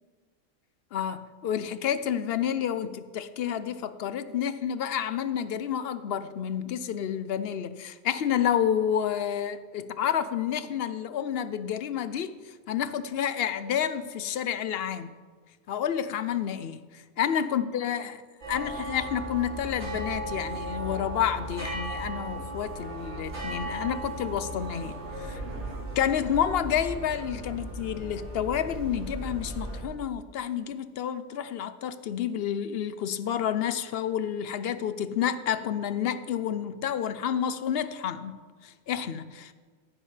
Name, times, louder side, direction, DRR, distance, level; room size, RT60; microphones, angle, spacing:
voice 1, 0.9-12.4 12.7-15.1 15.7-16.8 17.2-18.2 18.5-24.9 25.2-25.4 26.0-39.5, left 9 dB, 60° left, 13 dB, 0.7 m, -29 dB
sound 1, 18.4-29.8, right 1 dB, 60° right, 3.3 m, -36 dB
15.5 x 10.0 x 3.3 m, 1.5 s
omnidirectional pair, 1.3 m